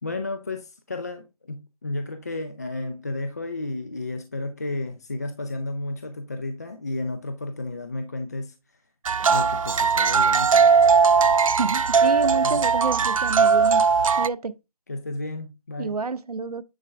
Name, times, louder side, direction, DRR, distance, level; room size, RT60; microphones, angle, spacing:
voice 1, 0.0-8.8 9.2-10.8 12.4-12.7 14.9-16.0, left 2 dB, 25° left, 0.5 m, -32 dB
sound 1, 9.0-14.3, right 5 dB, 65° right, 0.4 m, -19 dB
voice 2, 11.6-13.8 14.1-14.5 15.8-16.6, right 4 dB, 85° right, 0.8 m, -28 dB
9.8 x 5.1 x 3.4 m
figure-of-eight pair, 170°, 19 cm